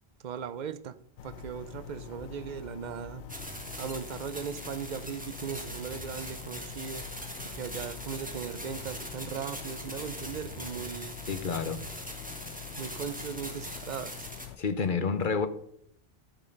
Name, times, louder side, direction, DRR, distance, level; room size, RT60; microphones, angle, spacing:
voice 1, 0.2-1.0 1.2-3.2 3.8-7.0 7.4-11.2 12.8-14.3, right 7 dB, 50° right, 13 dB, 0.7 m, -38 dB
sound 1, 1.2-14.6, left 13 dB, 85° left, 0.9 m, -46 dB
sound 2, 1.2-3.8 5.5-9.1 10.2-11.8, right 4 dB, 70° left, 2.9 m, -50 dB
sound 3, 3.3-14.5, equal, 10° right, 1.6 m, -42 dB
voice 2, 11.3-11.8 14.6-15.5, left 5 dB, 55° left, 11 dB, 1.0 m, -29 dB
14.0 x 5.4 x 5.3 m, 0.66 s
omnidirectional pair, 1.1 m